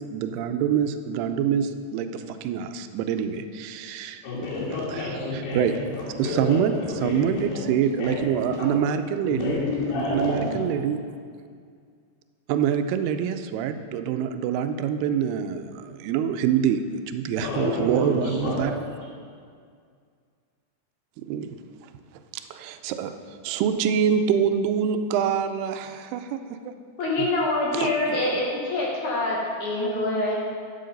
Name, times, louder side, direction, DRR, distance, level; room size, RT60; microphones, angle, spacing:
voice 1, 0.0-4.2 4.9-5.1 5.5-5.7 6.2-9.6 9.9-11.0 12.5-18.7 21.2-21.6 21.8-21.9 22.3-26.4 26.7-26.8 27.2-27.3 27.7-27.9, right 8 dB, 85° right, 8 dB, 2.6 m, -25 dB
voice 2, 4.2-7.6 7.9-8.7 9.2-10.6 17.4-18.9, left 3 dB, 80° left, -9 dB, 4.1 m, -30 dB
voice 3, 27.0-30.3, left 2 dB, 60° left, -3 dB, 2.3 m, -25 dB
11.5 x 7.7 x 5.2 m, 2.1 s
omnidirectional pair, 4.6 m